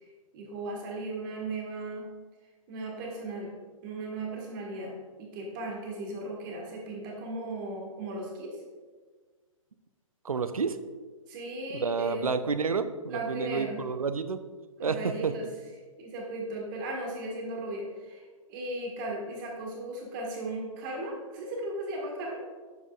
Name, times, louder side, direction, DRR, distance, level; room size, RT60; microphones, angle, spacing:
voice 1, 0.3-2.1 2.7-3.5 3.8-8.6 11.3-12.4 13.1-13.8 14.8-15.5 16.0-22.4, right 2 dB, 35° right, -1 dB, 1.6 m, -36 dB
voice 2, 10.2-10.8 11.7-14.4 14.8-15.3, right 5 dB, 80° right, 12 dB, 0.5 m, -30 dB
9.2 x 7.4 x 2.4 m, 1.4 s
figure-of-eight pair, 120°, 18 cm